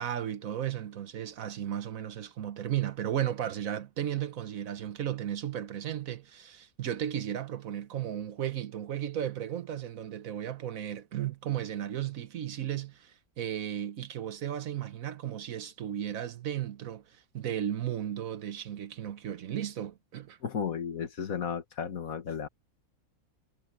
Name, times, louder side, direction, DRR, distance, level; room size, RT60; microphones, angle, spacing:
voice 1, 0.0-20.4, right 10 dB, 70° right, 1.4 m, -35 dB
voice 2, 20.4-22.5, left 7 dB, 75° left, 1.8 m, -34 dB
omnidirectional pair, 1.5 m